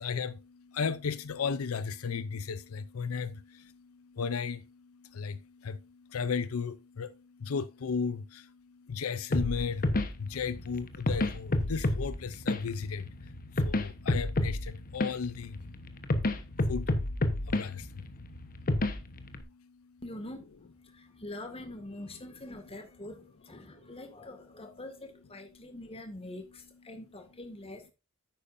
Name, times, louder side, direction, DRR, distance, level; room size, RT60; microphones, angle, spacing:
voice 1, 0.0-20.0 21.0-21.2 23.6-23.9, left 5 dB, 85° left, 0.5 m, -36 dB
sound 1, 9.3-19.4, left 2 dB, 45° left, 1.1 m, -31 dB
voice 2, 20.0-27.9, left 1 dB, 30° left, 2.0 m, -44 dB
10.5 x 8.5 x 2.6 m
head